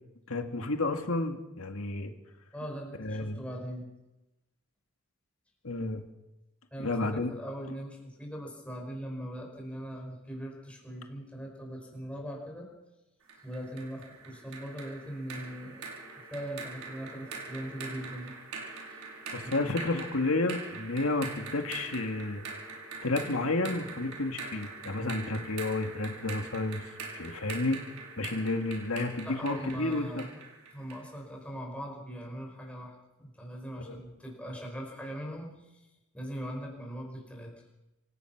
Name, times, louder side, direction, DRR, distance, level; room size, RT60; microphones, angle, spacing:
voice 1, 0.3-2.1 3.0-3.4 5.6-6.0 6.8-7.3 19.3-22.4 23.0-26.8 27.2-27.8 28.2-30.3 33.9-34.0, left 2 dB, 75° left, 5 dB, 2.1 m, -31 dB
voice 2, 2.5-3.9 6.7-12.7 13.4-15.8 16.3-18.3 18.8-19.1 19.4-19.8 29.2-30.4 30.7-32.9 33.2-35.9 36.1-37.5, equal, 5° left, 0 dB, 5.9 m, -40 dB
sound 1, 13.3-31.1, right 4 dB, 85° right, 5.5 m, -43 dB
26.0 x 16.5 x 6.1 m, 0.99 s
head